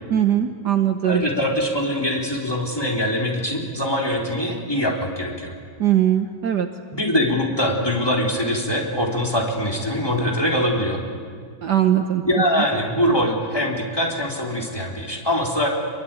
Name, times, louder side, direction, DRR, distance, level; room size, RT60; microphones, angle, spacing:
voice 1, 0.1-1.2 5.8-6.7 11.6-12.2, right 10 dB, 60° right, 7 dB, 1.5 m, -20 dB
voice 2, 1.0-5.5 6.9-11.0 12.2-15.7, equal, 10° left, -1 dB, 3.8 m, -23 dB
26.5 x 22.0 x 9.1 m, 2.1 s
omnidirectional pair, 2.2 m